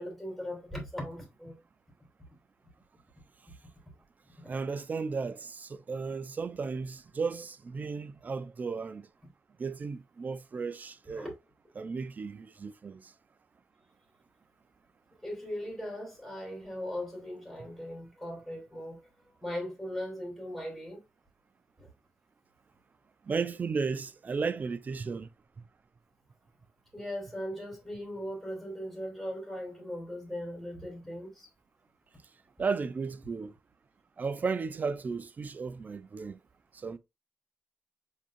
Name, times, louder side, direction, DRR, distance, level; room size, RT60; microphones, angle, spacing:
voice 1, 0.0-1.6 2.3-2.4 4.4-4.5 11.1-11.3 15.2-21.0 21.8-21.9 26.9-31.5, equal, ahead, 2.7 m, -39 dB
voice 2, 4.5-9.1 9.6-11.3 11.8-13.1 23.3-25.3 32.6-33.5 34.2-36.4 36.7-37.0, right 5 dB, 40° right, 0.4 m, -34 dB
5.3 x 3.7 x 2.5 m
cardioid pair, 110°, 4 cm